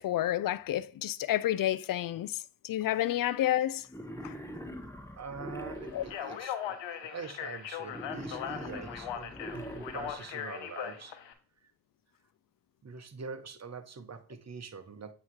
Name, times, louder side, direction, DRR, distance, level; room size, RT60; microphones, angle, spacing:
voice 1, 0.0-3.9 4.2-4.3 5.9-6.0, left 13 dB, 50° left, 0.5 m, -30 dB
Wild animals, 3.9-6.4 7.9-10.4, equal, 5° left, 1.3 m, -43 dB
voice 2, 5.2-11.2 11.6-11.7 12.8-15.1, right 5 dB, 35° right, 1.1 m, -44 dB
Speech, 6.0-11.3, left 9 dB, 75° left, 1.0 m, -39 dB
8.2 x 3.1 x 4.7 m
supercardioid pair, 45°, 45 cm